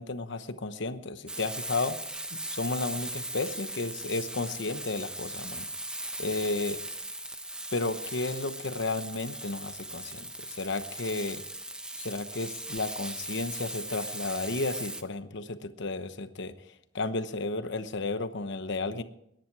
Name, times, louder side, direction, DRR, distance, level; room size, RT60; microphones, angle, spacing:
voice 1, 0.0-2.0 2.5-5.7 6.2-6.8 7.7-11.4 12.0-16.5 16.9-19.0, left 3 dB, 65° left, 11 dB, 1.0 m, -33 dB
Frying (food), 1.3-15.0, right 1 dB, 5° right, 0.9 m, -38 dB
20.5 x 10.5 x 4.7 m, 0.75 s
head